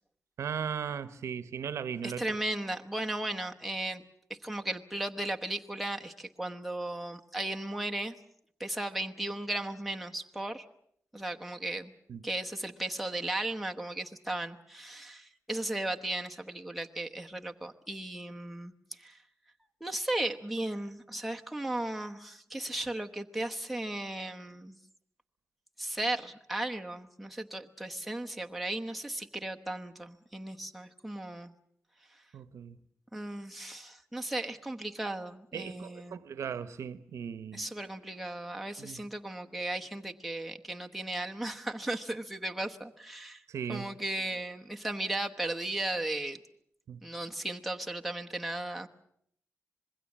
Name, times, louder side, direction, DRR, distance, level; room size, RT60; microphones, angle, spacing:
voice 1, 0.4-2.3 12.1-12.2 32.3-32.8 35.5-37.7 38.8-39.0 43.5-43.9 46.9-47.0, right 7 dB, 85° right, 0.9 m, -37 dB
voice 2, 2.0-4.0 4.4-8.1 8.6-10.7 11.1-11.9 12.2-19.2 19.8-24.8 25.8-31.5 33.1-36.2 37.5-43.4 43.7-46.4 47.0-48.9, right 1 dB, ahead, 1.1 m, -36 dB
26.0 x 21.0 x 7.3 m
wide cardioid pair, 155°, 5 cm